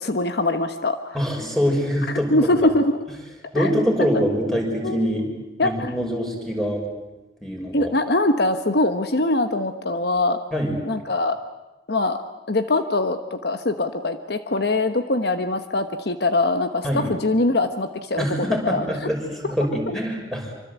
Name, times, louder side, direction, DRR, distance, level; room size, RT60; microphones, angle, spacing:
voice 1, 0.0-1.2 2.3-3.0 3.6-3.7 4.0-4.1 4.8-5.9 7.7-10.4 10.9-11.4 11.9-12.2 12.5-18.8 19.9-20.0, left 2 dB, 60° left, 8 dB, 1.3 m, -23 dB
voice 2, 1.1-2.5 3.5-5.3 5.6-6.8 7.4-7.9 10.5-10.8 16.8-17.1 18.2-19.2 19.5-20.5, equal, ahead, 0 dB, 6.1 m, -24 dB
26.0 x 25.0 x 8.3 m, 1.0 s
head